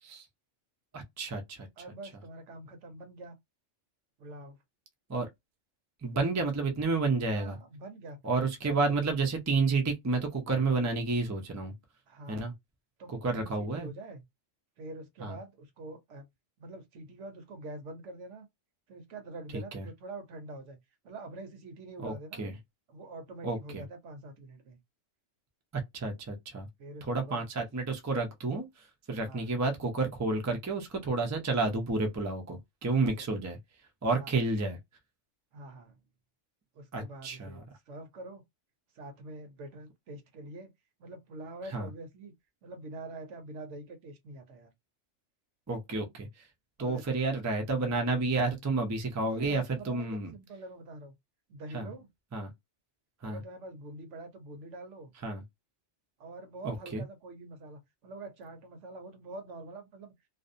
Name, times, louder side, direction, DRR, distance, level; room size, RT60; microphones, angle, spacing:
voice 1, 0.9-1.7 5.1-5.3 6.0-7.6 8.2-11.7 12.3-12.5 13.1-13.9 15.2-15.4 19.5-19.9 22.0-22.5 23.4-23.8 25.7-26.7 27.1-33.6 34.0-34.8 36.9-37.6 41.7-41.9 45.7-46.4 46.8-50.3 51.7-51.9 52.3-52.5 53.2-53.4 55.2-55.4 56.6-57.0, right 3 dB, 30° right, 0.3 m, -30 dB
voice 2, 1.8-3.4 4.2-4.6 7.3-8.2 8.4-9.0 12.1-12.5 13.0-14.2 14.8-16.3 16.6-18.5 18.9-20.8 21.0-22.4 22.9-24.8 26.8-27.7 29.1-29.5 32.9-33.5 34.1-34.4 35.5-36.0 36.7-38.4 38.9-40.7 41.0-42.3 42.6-44.7 46.8-47.2 49.2-51.1 51.5-52.1 53.2-55.1 56.2-60.1, right 2 dB, 70° right, 1.0 m, -45 dB
2.6 x 2.0 x 2.5 m
omnidirectional pair, 1.3 m